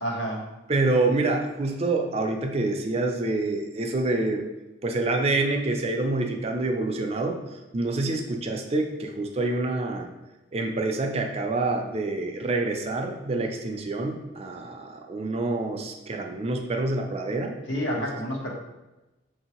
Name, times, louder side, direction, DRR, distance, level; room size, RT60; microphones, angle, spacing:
voice 1, 0.0-0.5 17.7-18.5, equal, 75° left, -1 dB, 1.0 m, -29 dB
voice 2, 0.7-4.4 4.8-10.1 10.5-17.5 18.0-18.1, right 2 dB, 30° right, 3 dB, 0.4 m, -27 dB
5.7 x 2.7 x 2.9 m, 1.0 s
head